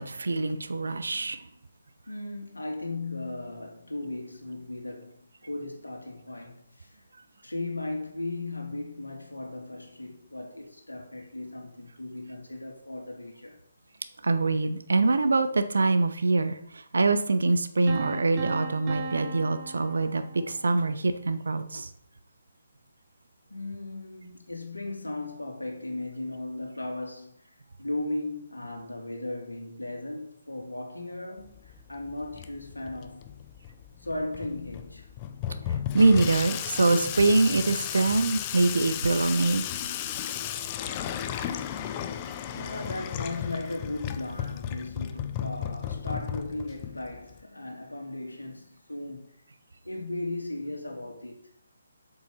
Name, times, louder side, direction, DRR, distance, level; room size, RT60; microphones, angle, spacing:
voice 1, 0.0-1.5 14.2-21.9 35.9-39.6, right 3 dB, 60° right, 1.0 m, -24 dB
voice 2, 2.1-7.0 7.4-13.6 23.5-33.2 34.0-35.1 42.5-49.4 49.8-51.4, left 2 dB, 75° left, 2.8 m, -37 dB
Piano, 17.9-20.8, right 6 dB, 25° right, 1.6 m, -37 dB
Water tap faucet / Sink (filling or washing), 31.4-47.4, left 10 dB, 25° left, 0.6 m, -35 dB
8.1 x 6.9 x 5.6 m
figure-of-eight pair, 140°, 0 cm